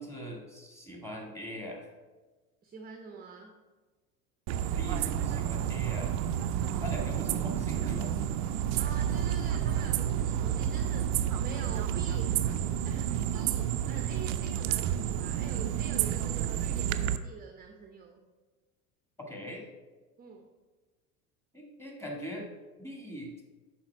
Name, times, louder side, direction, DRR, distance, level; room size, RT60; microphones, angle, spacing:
voice 1, 0.0-1.9 4.6-6.2 6.8-8.1 19.2-19.7 21.5-22.5 22.8-23.4, equal, 5° left, 0 dB, 1.8 m, -41 dB
voice 2, 2.6-3.6 8.8-11.1 11.4-12.4 12.8-18.2 20.2-20.5, right 5 dB, 20° right, 4 dB, 0.7 m, -46 dB
sound 1, 4.5-17.2, right 10 dB, 60° right, 0.5 m, -30 dB
7.1 x 5.1 x 4.5 m, 1.3 s
hypercardioid pair, 80°, 45 cm